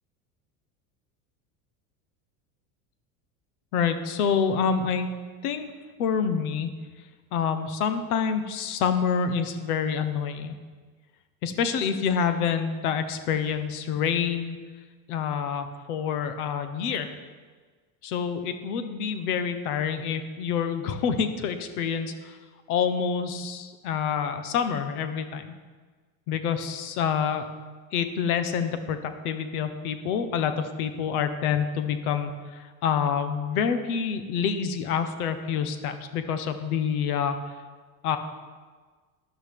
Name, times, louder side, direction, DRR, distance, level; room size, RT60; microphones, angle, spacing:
voice 1, 3.7-5.1 5.4-5.7 6.0-6.7 7.3-10.6 11.4-14.6 15.1-17.2 18.0-22.4 22.7-25.6 26.3-27.5 27.9-37.5 38.0-38.2, left 7 dB, 85° left, 9 dB, 1.2 m, -27 dB
12.5 x 11.5 x 3.6 m, 1.4 s
supercardioid pair, 140°, 43 cm